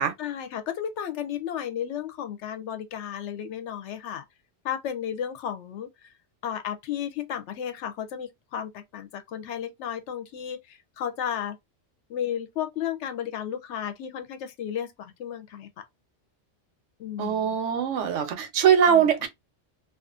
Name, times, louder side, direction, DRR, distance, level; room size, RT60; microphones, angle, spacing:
voice 1, 0.2-4.2 4.6-6.1 6.4-11.6 12.1-15.7 17.0-17.6 18.9-19.1, left 9 dB, 75° left, 0.9 m, -33 dB
voice 2, 17.2-19.3, right 8 dB, 90° right, 1.0 m, -22 dB
2.4 x 2.4 x 2.3 m
omnidirectional pair, 1.2 m